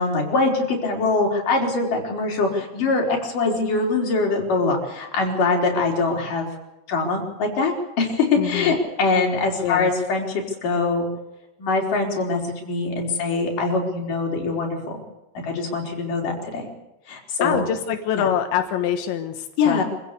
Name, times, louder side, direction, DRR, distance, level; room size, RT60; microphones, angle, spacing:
voice 1, 0.0-6.5 6.9-11.1 11.6-14.8 15.4-16.7 17.1-17.6 18.2-18.3 19.6-19.8, left 3 dB, 50° left, 0 dB, 5.9 m, -23 dB
voice 2, 8.4-8.8 9.6-9.9 17.4-19.8, left 9 dB, 90° left, 6 dB, 3.8 m, -25 dB
26.5 x 16.0 x 8.4 m, 0.93 s
omnidirectional pair, 5.0 m